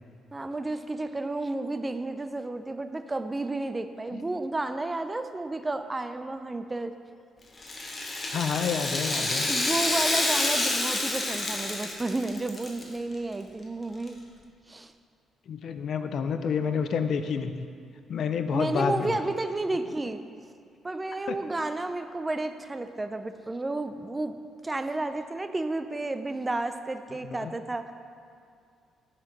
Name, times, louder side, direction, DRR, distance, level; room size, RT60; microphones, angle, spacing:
voice 1, 0.3-6.9 9.5-14.2 14.7-14.9 18.5-20.2 20.8-24.4 24.6-27.9, right 2 dB, 20° right, 9 dB, 0.3 m, -31 dB
Rattle (instrument), 7.6-12.8 13.1-13.2 14.1-14.2, left 2 dB, 30° left, 0.9 m, -28 dB
voice 2, 8.3-9.5 15.5-17.6 18.1-19.2 21.3-21.4 27.2-27.5, left 6 dB, 65° left, 9 dB, 0.4 m, -29 dB
6.4 x 4.5 x 4.7 m, 2.3 s
cardioid pair, 90°, 0 cm